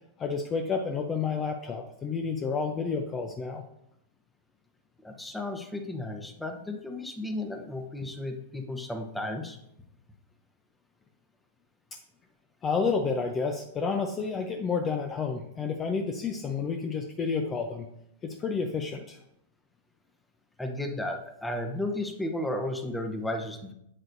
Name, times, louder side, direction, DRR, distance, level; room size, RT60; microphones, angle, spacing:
voice 1, 0.2-3.6 12.6-17.9 18.2-19.2, left 5 dB, 25° left, 5 dB, 0.6 m, -30 dB
voice 2, 5.0-9.6 20.6-23.7, left 1 dB, 5° left, 4 dB, 1.0 m, -34 dB
7.9 x 7.6 x 2.7 m, 0.79 s
hypercardioid pair, 105°, 0 cm